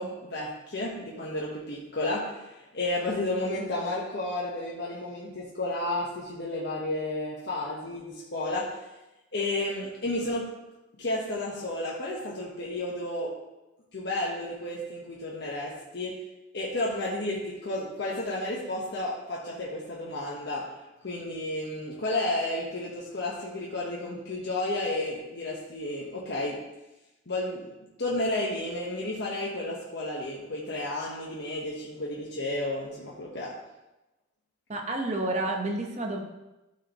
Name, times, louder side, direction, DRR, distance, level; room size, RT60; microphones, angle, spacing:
voice 1, 0.0-8.8 9.3-10.5 11.0-13.3 13.9-16.2 16.5-20.7 21.0-26.6 27.3-27.7 28.0-33.5, left 1 dB, 60° left, -5 dB, 1.2 m, -32 dB
voice 2, 34.7-36.2, right 2 dB, 35° right, 1 dB, 1.1 m, -30 dB
12.0 x 4.8 x 3.0 m, 0.99 s
head